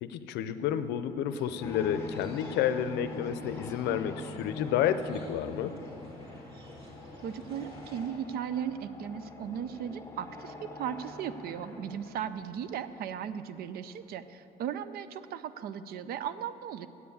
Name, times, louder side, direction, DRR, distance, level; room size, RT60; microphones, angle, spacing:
voice 1, 0.0-5.8, left 9 dB, 85° left, 12 dB, 0.5 m, -30 dB
sound 1, 1.3-8.1, left 1 dB, 30° right, 2.4 m, -49 dB
sound 2, 1.6-13.7, left 2 dB, 15° left, 1.1 m, -45 dB
voice 2, 7.2-16.9, right 8 dB, 65° right, 14 dB, 0.5 m, -37 dB
8.5 x 7.0 x 8.5 m, 2.8 s
cardioid pair, 110°, 17 cm